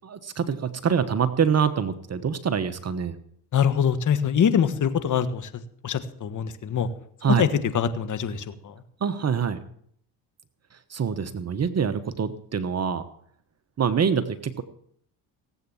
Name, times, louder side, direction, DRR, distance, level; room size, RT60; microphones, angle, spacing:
voice 1, 0.0-3.2 7.2-7.5 9.0-9.6 10.9-13.0 13.8-14.6, right 7 dB, 30° right, 11 dB, 1.1 m, -25 dB
voice 2, 3.5-5.5 5.8-6.9 7.4-7.5 7.7-8.7, left 8 dB, 40° left, 11 dB, 1.6 m, -24 dB
17.5 x 8.2 x 7.2 m, 0.64 s
supercardioid pair, 80°, 47 cm